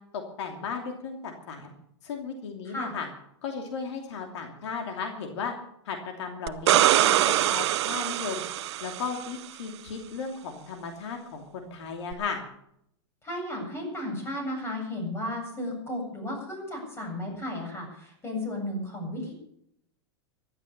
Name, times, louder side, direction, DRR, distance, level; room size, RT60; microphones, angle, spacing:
voice 1, 0.1-1.7 2.0-3.1 3.4-5.5 5.8-8.4 8.8-12.4, left 5 dB, 75° left, 3 dB, 2.8 m, -35 dB
sound 1, 6.5-9.3 12.1-12.2, right 13 dB, 70° right, 0.8 m, -23 dB
voice 2, 13.2-19.3, left 1 dB, 15° left, 2 dB, 7.9 m, -34 dB
15.5 x 12.0 x 6.8 m, 0.74 s
hypercardioid pair, 130°, 15 cm